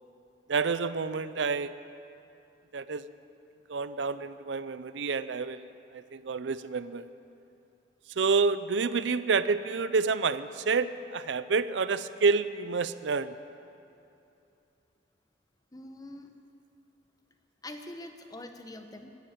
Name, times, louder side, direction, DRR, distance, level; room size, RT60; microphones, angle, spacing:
voice 1, 0.5-1.7 2.7-3.1 3.7-7.1 8.2-13.3, right 4 dB, 85° right, 14 dB, 0.5 m, -28 dB
voice 2, 15.7-16.3 17.6-19.1, left 1 dB, 20° left, 6 dB, 0.9 m, -44 dB
14.5 x 10.0 x 8.9 m, 2.7 s
head